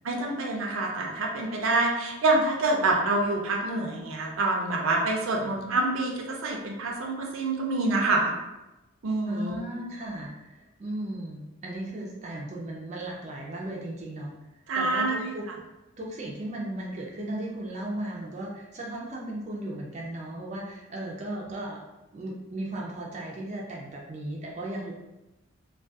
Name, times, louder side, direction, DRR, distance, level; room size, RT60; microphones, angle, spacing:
voice 1, 0.0-8.3 9.0-9.6 14.7-15.3, right 2 dB, 90° right, 1 dB, 0.5 m, -26 dB
voice 2, 9.2-14.3 14.7-15.5 16.0-21.8 22.1-24.9, right 1 dB, 35° right, -3 dB, 0.4 m, -36 dB
2.3 x 2.3 x 2.6 m, 0.99 s
head